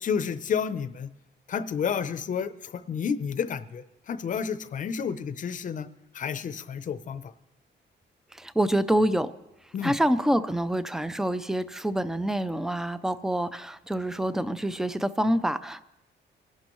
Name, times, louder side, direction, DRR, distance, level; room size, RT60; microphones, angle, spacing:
voice 1, 0.0-1.1 1.5-5.9 6.1-7.3 9.7-9.9, left 7 dB, 40° left, 12 dB, 0.6 m, -30 dB
voice 2, 8.3-9.3 9.8-15.8, right 1 dB, ahead, 14 dB, 0.4 m, -26 dB
24.0 x 11.5 x 3.0 m, 0.91 s
wide cardioid pair, 175°, 20 cm